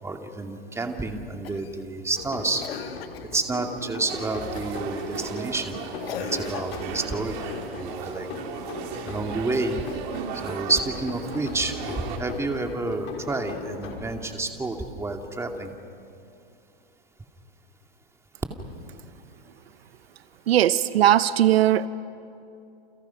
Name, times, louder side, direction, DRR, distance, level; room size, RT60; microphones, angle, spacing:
voice 1, 0.0-2.6 3.3-5.8 6.3-7.4 7.7-8.3 9.0-9.8 10.4-15.7, right 3 dB, 10° right, 3 dB, 2.4 m, -29 dB
Cough, 1.4-1.8 2.6-3.4 4.6-4.9 6.0-7.1 10.2-11.0 12.5-12.6, left 10 dB, 75° left, 1.4 m, -39 dB
sound 1, 2.2-14.6, left 4 dB, 40° left, 5.8 m, -38 dB
sound 2, 4.1-12.2, right 7 dB, 50° right, 3.4 m, -37 dB
voice 2, 20.5-21.9, right 12 dB, 80° right, 14 dB, 0.9 m, -19 dB
30.0 x 29.0 x 5.9 m, 2.6 s
hypercardioid pair, 125°, 30 cm